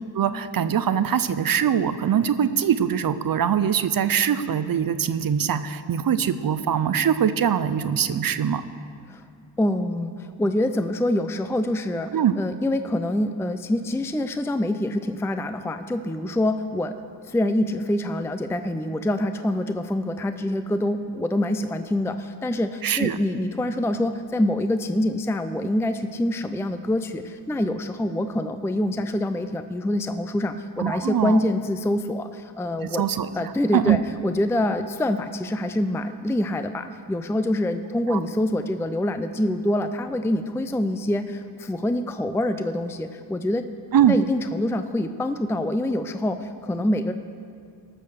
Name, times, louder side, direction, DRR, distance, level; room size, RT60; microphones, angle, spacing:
voice 1, 0.1-8.6 12.1-12.3 22.8-23.2 30.8-31.4 33.0-33.3 33.7-34.0 38.1-38.2 43.9-44.2, right 8 dB, 55° right, 12 dB, 0.6 m, -22 dB
voice 2, 9.6-12.1 12.4-16.9 17.3-33.1 33.3-43.6 44.1-47.1, left 1 dB, 5° left, 9 dB, 0.4 m, -25 dB
18.0 x 6.6 x 6.4 m, 2.3 s
cardioid pair, 85°, 40 cm